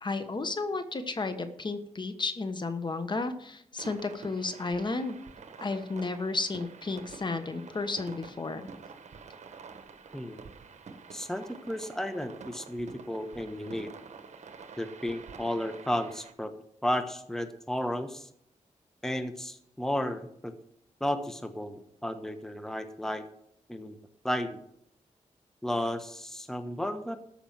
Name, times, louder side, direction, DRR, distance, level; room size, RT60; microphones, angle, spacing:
voice 1, 0.0-5.2 5.6-8.6, left 3 dB, 40° left, 9 dB, 1.2 m, -33 dB
sound 1, 3.8-16.3, right 5 dB, 70° right, 1.2 m, -48 dB
voice 2, 10.1-10.4 11.1-13.9 14.8-16.5 16.8-18.3 19.0-20.5 21.0-23.2 23.7-24.0 24.2-24.6 25.6-27.2, left 1 dB, 5° left, 8 dB, 1.1 m, -33 dB
13.5 x 5.9 x 7.4 m, 0.71 s
cardioid pair, 85°, 12 cm